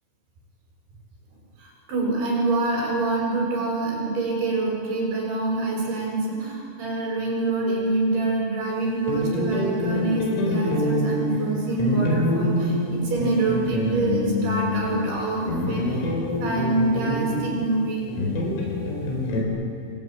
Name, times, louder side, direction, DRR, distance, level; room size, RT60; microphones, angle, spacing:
voice 1, 1.6-16.1 16.4-18.1, right 3 dB, 50° right, -5 dB, 7.9 m, -26 dB
sound 1, 9.1-19.4, left 1 dB, 90° left, 7.4 m, -26 dB
29.5 x 23.5 x 7.8 m, 2.7 s
omnidirectional pair, 5.8 m